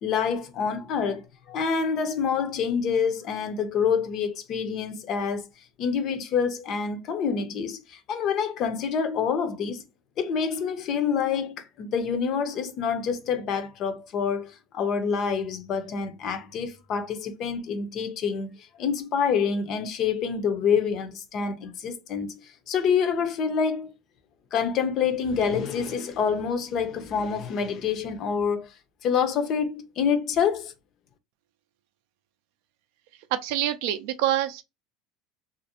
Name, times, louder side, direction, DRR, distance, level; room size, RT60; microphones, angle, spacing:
voice 1, 0.0-5.4 5.8-9.8 10.2-23.9 24.5-28.7 29.0-30.7, left 6 dB, 45° left, 0.5 m, -27 dB
voice 2, 33.4-34.6, right 12 dB, 75° right, 0.3 m, -26 dB
2.4 x 2.0 x 2.7 m
supercardioid pair, 125°, 0 cm